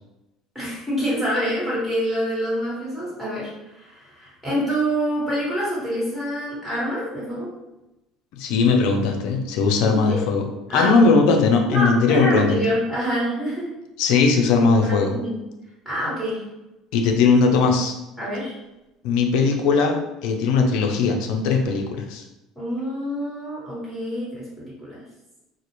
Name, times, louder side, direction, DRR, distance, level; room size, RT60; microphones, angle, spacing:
voice 1, 0.5-7.5 9.9-10.2 10.7-11.0 11.7-13.7 15.0-15.4 15.8-16.4 18.2-18.5 22.5-25.0, equal, ahead, -7 dB, 1.4 m, -26 dB
voice 2, 8.3-10.5 10.7-12.6 14.0-15.2 16.9-17.9 19.0-22.2, left 4 dB, 75° left, 3 dB, 0.4 m, -19 dB
2.4 x 2.0 x 3.0 m, 0.95 s
supercardioid pair, 115°, 0 cm